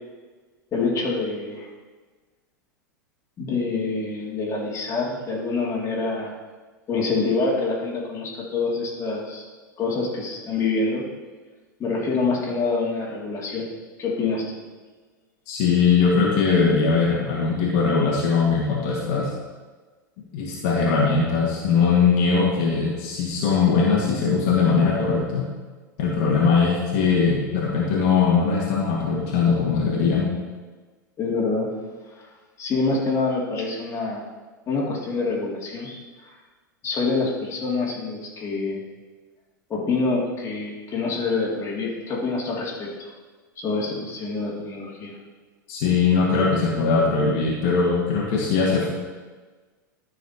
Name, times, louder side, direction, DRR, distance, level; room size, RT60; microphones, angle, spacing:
voice 1, 0.7-1.7 3.4-6.3 6.9-9.5 9.8-11.0 11.8-13.7 14.0-14.5 31.2-31.7 32.2-32.3 32.6-34.2 34.7-36.3 36.8-38.8 39.7-43.1 43.6-45.2, left 3 dB, 30° left, -3 dB, 2.3 m, -26 dB
voice 2, 15.5-19.3 20.3-25.5 26.0-30.3 45.7-48.9, left 5 dB, 55° left, -4 dB, 1.7 m, -20 dB
13.0 x 6.1 x 2.8 m, 1.4 s
figure-of-eight pair, 90°, 11 cm